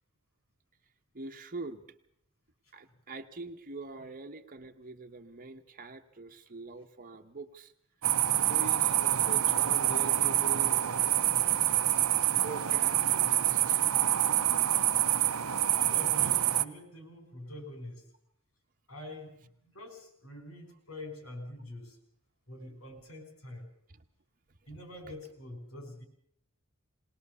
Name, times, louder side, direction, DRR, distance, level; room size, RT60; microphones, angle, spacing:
voice 1, 1.1-1.8 2.7-7.7 8.5-10.8 11.1-11.3 12.1-13.9 23.9-24.0, right 3 dB, 40° right, 4 dB, 1.1 m, -44 dB
sound 1, 8.0-16.6, right 12 dB, 80° right, 0.8 m, -26 dB
voice 2, 15.7-18.0 18.9-22.0 22.5-23.7 24.7-26.0, left 1 dB, 85° left, 6 dB, 5.3 m, -45 dB
21.5 x 19.0 x 6.9 m, 0.69 s
head